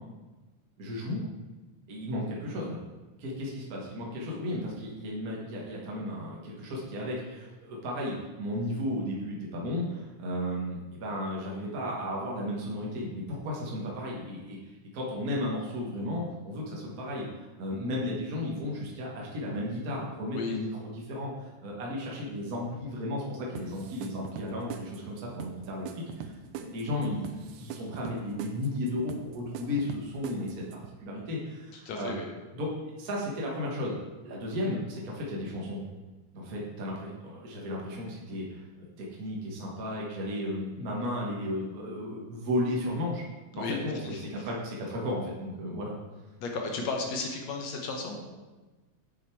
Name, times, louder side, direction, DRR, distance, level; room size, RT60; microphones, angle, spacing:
voice 1, 0.8-1.2 1.9-2.8 3.2-14.6 14.9-26.3 26.6-32.1 32.5-34.0 34.2-35.8 36.3-38.6 39.0-43.2 43.5-45.9, left 1 dB, 50° right, -3 dB, 1.1 m, -34 dB
sound 1, 23.6-30.9, right 7 dB, 80° right, 2.2 m, -42 dB
voice 2, 31.9-32.3 43.6-43.8 44.0-44.2 46.4-48.2, left 4 dB, 65° left, 2 dB, 2.0 m, -33 dB
8.4 x 6.4 x 4.6 m, 1.2 s
omnidirectional pair, 3.7 m